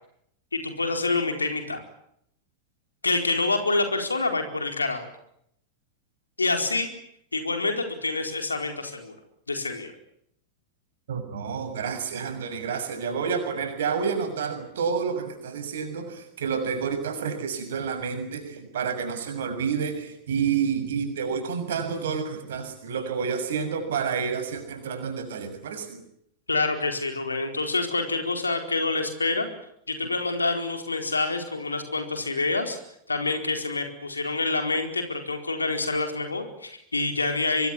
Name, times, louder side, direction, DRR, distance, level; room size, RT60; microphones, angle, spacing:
voice 1, 0.5-1.8 3.0-5.1 6.4-6.9 7.3-9.2 9.5-9.9 26.5-29.5 29.9-32.8 33.1-37.7, left 3 dB, 80° left, 6 dB, 4.5 m, -27 dB
voice 2, 11.1-26.0, right 6 dB, 60° right, 7 dB, 6.8 m, -29 dB
25.0 x 22.5 x 9.8 m, 0.74 s
figure-of-eight pair, 90°, 0 cm